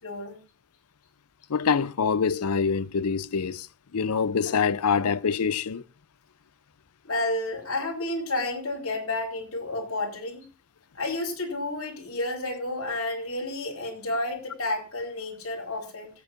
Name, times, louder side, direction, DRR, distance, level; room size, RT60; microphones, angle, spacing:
voice 1, 0.0-0.4 7.0-10.4 10.9-16.1, left 2 dB, 65° left, 4.2 m, -31 dB
voice 2, 1.5-3.7 3.9-5.8, left 6 dB, 85° left, 0.6 m, -25 dB
25.0 x 8.5 x 2.6 m
head